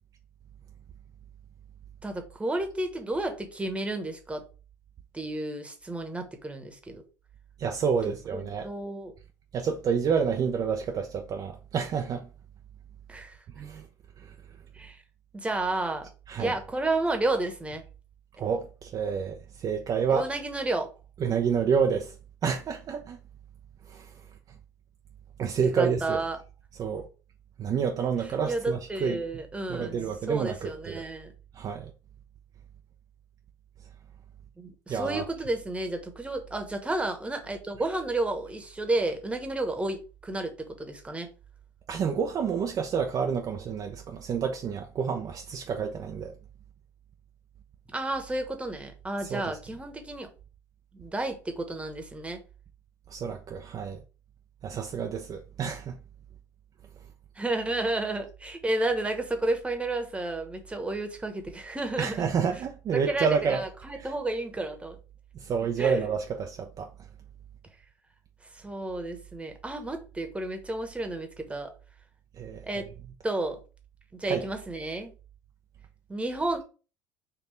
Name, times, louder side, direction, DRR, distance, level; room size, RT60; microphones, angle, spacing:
voice 1, 2.0-4.4 5.1-7.0 8.3-9.1 13.1-13.4 14.7-15.0 15.3-16.1 16.4-17.8 20.1-20.9 25.8-26.4 28.4-30.0 30.3-31.3 34.6-41.3 47.9-50.3 50.9-52.4 57.4-62.3 62.9-65.0 65.8-66.0 68.5-71.7 72.6-72.9 73.2-73.6 74.1-75.1 76.1-76.6, right 2 dB, 15° right, 1.1 m, -31 dB
voice 2, 7.6-8.7 9.5-12.3 13.6-13.9 14.2-14.4 16.3-16.6 18.4-20.3 21.2-22.1 22.4-23.2 23.9-24.1 25.4-26.2 26.8-27.1 27.6-29.2 29.7-31.0 31.5-31.9 34.9-35.3 41.9-46.3 49.3-49.6 53.1-54.0 54.6-56.0 62.0-63.6 64.0-64.1 65.3-66.9 72.4-72.8 74.3-74.5, right 6 dB, 45° right, 0.6 m, -29 dB
4.5 x 2.7 x 3.3 m
hypercardioid pair, 70°, 9 cm